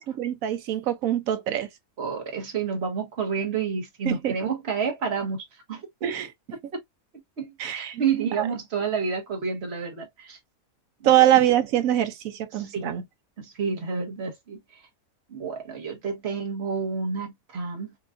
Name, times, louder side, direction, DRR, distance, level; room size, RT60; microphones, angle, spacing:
voice 1, 0.0-1.7 4.0-4.3 6.0-6.3 7.6-8.0 8.4-8.5 11.0-13.0, right 12 dB, 70° right, 1.0 m, -23 dB
voice 2, 2.0-5.9 7.4-10.4 11.0-11.3 12.5-13.0 13.4-14.8 15.3-17.9, right 5 dB, 45° right, 1.5 m, -30 dB
4.6 x 2.5 x 2.4 m
omnidirectional pair, 1.5 m